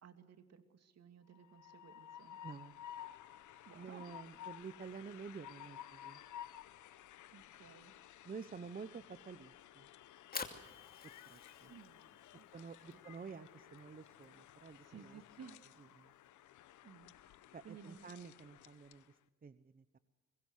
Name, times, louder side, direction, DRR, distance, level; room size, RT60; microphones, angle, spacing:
voice 1, 0.0-2.4 3.6-4.2 7.3-7.9 8.2-8.3 11.7-12.4 12.9-13.0 14.8-15.6 16.8-17.4 17.6-18.1, right 7 dB, 55° right, 9 dB, 2.6 m, -57 dB
Train, 1.3-19.1, left 11 dB, 75° left, 1.1 m, -55 dB
voice 2, 2.4-2.8 3.7-6.2 8.2-9.9 11.0-11.7 12.5-15.2 16.0-16.1 17.5-20.0, right 5 dB, 30° right, 13 dB, 0.9 m, -50 dB
Fire, 10.1-16.2, left 4 dB, 30° left, 2.7 m, -51 dB
24.5 x 21.5 x 6.5 m, 1.3 s
cardioid pair, 90°, 30 cm